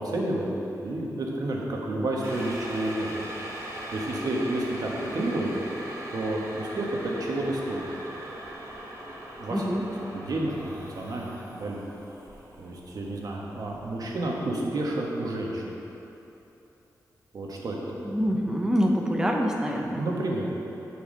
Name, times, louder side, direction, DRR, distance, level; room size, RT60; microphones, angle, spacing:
voice 1, 0.0-3.2 3.9-5.5 6.1-8.0 9.4-9.6 10.1-11.8 12.6-15.6 17.3-17.8 18.1-18.2 19.9-20.6, right 1 dB, 65° right, -2 dB, 1.3 m, -30 dB
sound 1, 2.2-14.3 14.6-14.7, right 1 dB, 50° right, 1.7 m, -40 dB
voice 2, 9.5-9.8 18.0-20.0, equal, 10° right, 1 dB, 0.8 m, -25 dB
7.1 x 4.7 x 6.4 m, 3.0 s
cardioid pair, 85°, 7 cm